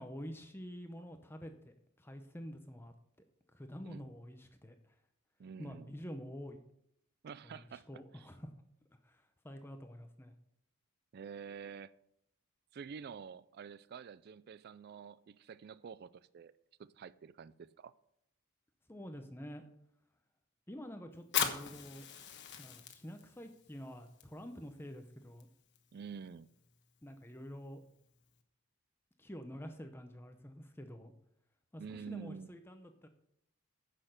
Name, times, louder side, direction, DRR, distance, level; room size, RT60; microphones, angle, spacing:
voice 1, 0.0-2.9 3.5-5.0 5.6-6.6 7.4-8.5 9.0-10.3 18.9-19.7 20.7-22.1 22.6-25.5 27.0-27.8 29.2-31.1 31.7-33.1, equal, 10° left, 0.7 m, -48 dB
voice 2, 5.4-5.9 7.2-7.9 8.1-8.3 11.1-11.9 12.7-16.5 16.8-17.9 25.9-26.5 31.8-32.5, right 6 dB, 45° right, 0.3 m, -48 dB
Fire, 21.2-28.4, left 8 dB, 50° left, 1.3 m, -42 dB
9.7 x 6.7 x 6.4 m
head